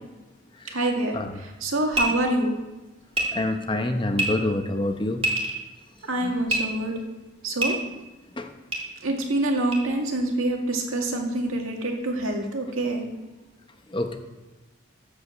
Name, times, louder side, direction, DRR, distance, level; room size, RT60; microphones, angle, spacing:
voice 1, 0.7-1.2 1.4-2.5 6.0-6.9 7.4-7.8 9.0-13.0, right 1 dB, 90° right, 1 dB, 2.2 m, -26 dB
sound 1, 1.9-2.1 3.1-3.2 4.1-4.3 5.2-5.6 6.5-6.6 7.6-7.7 8.7-8.8 9.7-9.8, right 1 dB, 30° right, 2.2 m, -24 dB
voice 2, 3.3-5.2 6.2-6.4 8.4-8.5 13.9-14.2, left 1 dB, 25° left, 6 dB, 0.8 m, -27 dB
15.0 x 5.2 x 6.3 m, 1.1 s
head